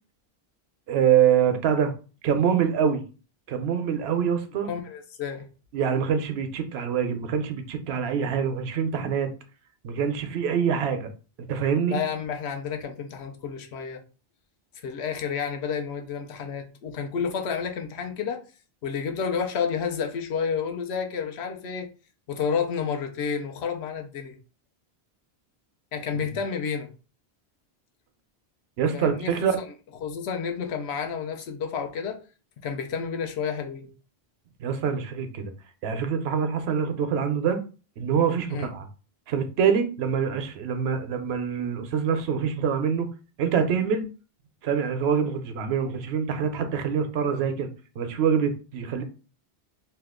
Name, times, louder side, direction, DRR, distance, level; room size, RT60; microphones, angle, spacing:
voice 1, 0.9-1.9 2.2-3.0 3.5-4.7 5.7-9.3 9.8-11.1 11.4-12.0 28.8-29.6 34.6-35.5 35.8-37.6 38.0-38.9 39.3-43.1 43.4-44.1 44.6-47.7 48.0-49.0, right 7 dB, 85° right, 0.8 m, -25 dB
voice 2, 4.6-5.5 11.9-14.0 14.8-18.4 18.8-21.9 22.3-24.3 25.9-26.9 28.9-29.4 30.0-32.2 32.6-33.9 38.5-38.7, left 6 dB, 85° left, 0.9 m, -30 dB
2.8 x 2.2 x 3.5 m
omnidirectional pair, 1.1 m